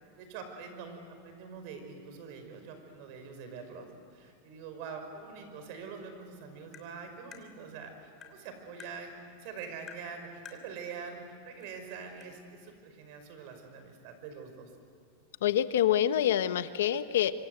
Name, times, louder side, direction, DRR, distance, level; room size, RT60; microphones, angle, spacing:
voice 1, 0.2-9.1 9.4-14.7, right 5 dB, 55° right, 6 dB, 5.5 m, -44 dB
Tap, 6.7-6.9 7.3-7.5 8.2-8.4 8.8-8.9 9.9-10.1 10.5-10.6 11.6-11.7 12.2-12.3, left 8 dB, 25° left, 3.1 m, -48 dB
voice 2, 15.4-17.3, left 11 dB, 85° left, 11 dB, 1.1 m, -26 dB
26.0 x 25.5 x 8.1 m, 2.4 s
supercardioid pair, 140°, 0 cm